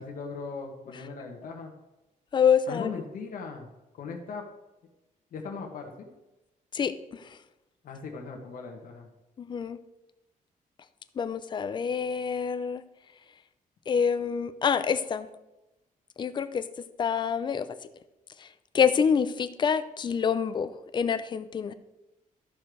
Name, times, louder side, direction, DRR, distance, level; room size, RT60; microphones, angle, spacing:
voice 1, 0.0-1.7 2.7-3.7 3.9-4.4 5.3-6.1 7.8-9.1, left 4 dB, 75° left, 1 dB, 1.5 m, -38 dB
voice 2, 2.3-2.9 6.7-7.2 9.4-9.8 11.2-12.8 13.9-15.3 16.2-16.7 17.0-17.7 18.4-18.5 18.7-21.7, left 7 dB, 35° left, 12 dB, 0.5 m, -26 dB
13.0 x 5.2 x 6.2 m, 0.98 s
wide cardioid pair, 180°, 14 cm